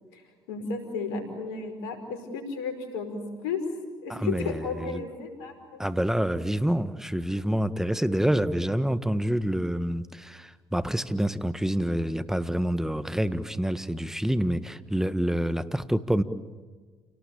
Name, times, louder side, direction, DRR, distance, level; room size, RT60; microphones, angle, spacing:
voice 1, 0.5-3.6 4.0-5.8, left 5 dB, 85° left, 5 dB, 5.2 m, -33 dB
voice 2, 4.1-5.0 5.8-16.2, equal, 5° right, 12 dB, 1.6 m, -27 dB
29.0 x 19.0 x 8.8 m, 1.5 s
hypercardioid pair, 60°, 13 cm